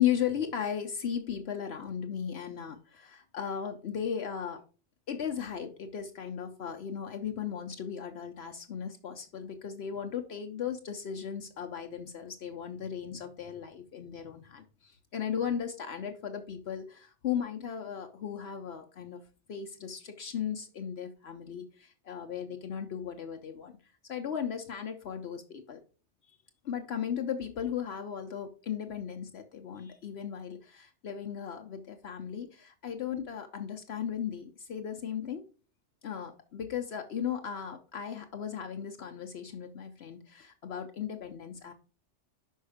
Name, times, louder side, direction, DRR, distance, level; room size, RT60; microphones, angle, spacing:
voice 1, 0.0-4.6 5.1-19.2 19.5-23.7 24.1-25.8 26.6-35.4 36.0-41.7, left 8 dB, 65° left, 5 dB, 0.9 m, -36 dB
5.5 x 5.3 x 4.9 m, 0.37 s
omnidirectional pair, 1.2 m